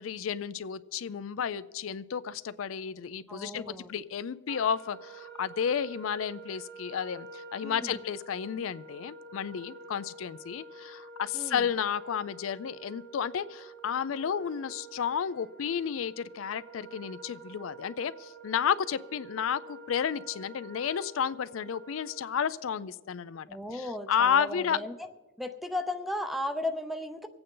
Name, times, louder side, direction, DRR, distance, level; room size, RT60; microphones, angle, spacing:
voice 1, 0.0-3.6 3.9-23.5 23.7-24.8, left 8 dB, 80° left, 15 dB, 0.4 m, -32 dB
voice 2, 3.3-3.9 7.6-8.0 11.3-11.7 23.5-25.1 25.4-27.3, left 1 dB, ahead, 9 dB, 0.6 m, -35 dB
Wind instrument woodwind instrument, 4.5-22.6, right 3 dB, 55° right, 0.8 m, -48 dB
24.5 x 8.8 x 3.8 m, 1.3 s
head